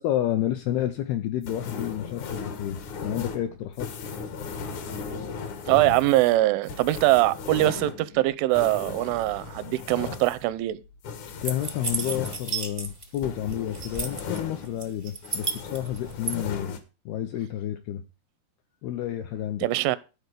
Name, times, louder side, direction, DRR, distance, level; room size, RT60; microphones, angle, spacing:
voice 1, 0.0-3.9 11.4-16.8 17.1-18.0 18.8-19.7, left 12 dB, 80° left, 2.3 m, -30 dB
sound 1, 1.4-15.0 15.2-16.8, left 5 dB, 65° left, 1.9 m, -37 dB
voice 2, 5.7-10.8 19.6-20.0, right 17 dB, 90° right, 3.1 m, -22 dB
sound 2, 11.4-13.2 13.5-14.4 14.8-16.3, right 4 dB, 25° right, 0.7 m, -32 dB
12.0 x 4.5 x 8.1 m
omnidirectional pair, 5.4 m